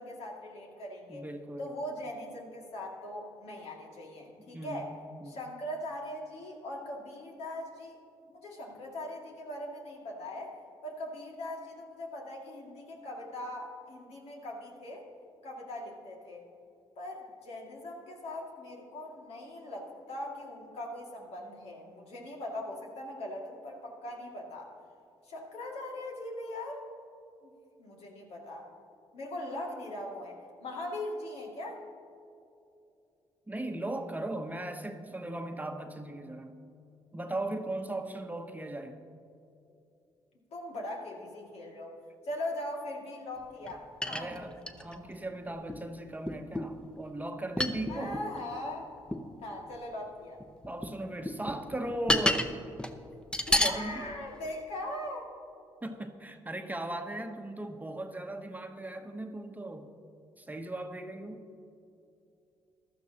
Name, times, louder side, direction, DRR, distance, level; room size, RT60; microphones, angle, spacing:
voice 1, 0.0-1.2 1.6-4.9 5.2-8.0 8.3-10.5 10.8-15.0 15.4-16.5 17.0-24.7 25.2-26.8 27.4-27.5 27.8-28.7 29.1-31.8 40.5-41.9 42.2-44.5 45.5-45.6 47.9-48.9 49.4-50.4 53.5-55.3, left 1 dB, 75° left, -1 dB, 2.3 m, -40 dB
voice 2, 1.1-1.7 4.4-5.4 33.5-36.5 37.1-39.0 44.1-48.2 50.7-52.5 53.6-54.0 55.8-60.0 60.4-61.5, right 1 dB, 15° right, 5 dB, 1.0 m, -38 dB
sound 1, 43.7-43.8 44.0-45.1 45.7-45.8 46.3-46.8 47.6-48.3 49.1-49.3 50.4-50.9 51.3-52.5 52.8-52.9 53.3-53.8 54.4-54.5, left 1 dB, 10° left, 0.9 m, -30 dB
15.5 x 12.0 x 2.9 m, 2.7 s
supercardioid pair, 60°, 11 cm